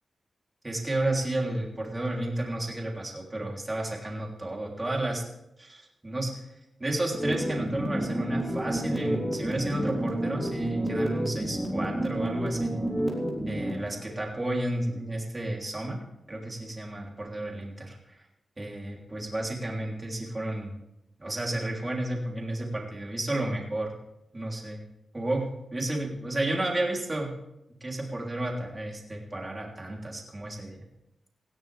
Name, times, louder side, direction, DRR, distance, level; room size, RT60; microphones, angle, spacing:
voice 1, 0.6-5.2 5.6-6.3 6.8-12.7 13.5-16.0 16.3-18.2 18.6-20.7 21.2-23.9 24.3-24.8 25.1-27.3 27.8-30.8, right 1 dB, 20° right, -1 dB, 3.3 m, -32 dB
sound 1, 7.1-13.8, right 1 dB, ahead, 3.6 m, -30 dB
18.0 x 16.0 x 3.5 m, 0.86 s
wide cardioid pair, 120°, 0 cm